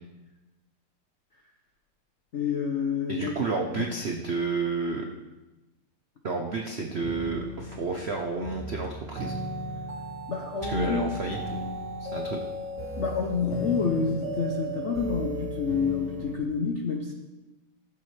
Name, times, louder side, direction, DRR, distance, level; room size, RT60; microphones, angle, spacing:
voice 1, 2.3-3.3 3.8-4.0 10.3-11.1 13.0-17.1, left 5 dB, 65° left, 1 dB, 0.7 m, -28 dB
voice 2, 3.1-5.1 6.2-9.4 10.6-12.5, right 4 dB, 70° right, 2 dB, 0.6 m, -31 dB
sound 1, 7.0-16.4, right 1 dB, 40° right, 2.1 m, -35 dB
15.0 x 7.5 x 3.3 m, 1.1 s
omnidirectional pair, 2.3 m